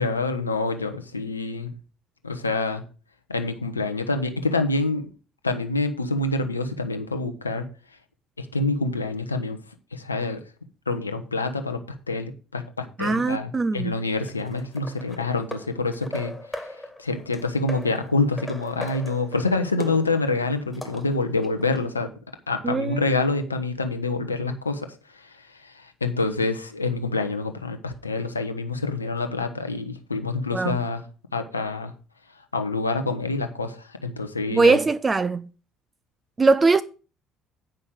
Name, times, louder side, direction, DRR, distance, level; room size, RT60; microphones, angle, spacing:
voice 1, 0.0-1.7 2.2-2.8 3.3-5.0 5.4-7.6 8.4-9.6 9.9-10.4 10.9-11.8 12.1-22.1 22.5-31.0 31.3-31.9 32.5-34.8, left 3 dB, 85° left, 0.8 m, -27 dB
voice 2, 13.0-13.9 22.6-23.1 30.5-30.8 34.5-35.5 36.4-36.8, right 4 dB, 25° right, 0.5 m, -21 dB
sound 1, 14.0-21.9, left 1 dB, 5° left, 2.1 m, -39 dB
9.0 x 5.5 x 6.4 m
figure-of-eight pair, 55°, 0 cm